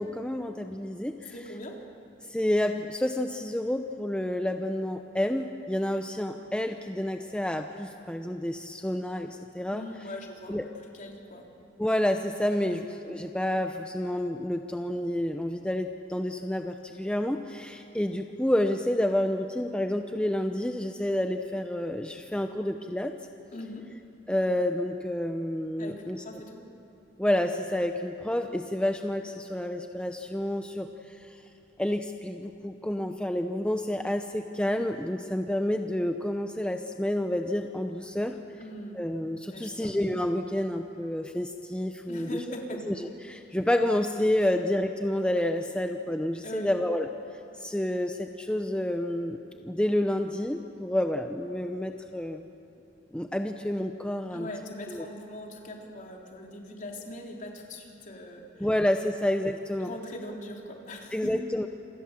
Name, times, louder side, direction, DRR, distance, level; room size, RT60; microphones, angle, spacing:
voice 1, 0.0-1.3 2.3-9.8 10.5-10.7 11.8-23.1 24.3-26.2 27.2-31.4 31.8-38.4 38.9-42.3 42.9-43.0 43.2-47.1 47.6-52.5 53.1-54.5 54.9-55.0 58.6-59.9 61.1-61.7, left 1 dB, 5° left, 5 dB, 0.8 m, -29 dB
voice 2, 1.3-1.7 9.7-10.6 10.9-11.4 12.6-12.9 23.5-23.9 25.8-26.6 38.6-39.0 39.5-39.9 42.1-42.8 46.4-46.7 54.3-58.7 59.8-61.4, left 1 dB, 45° left, 0 dB, 3.9 m, -41 dB
28.0 x 25.5 x 7.6 m, 3.0 s
head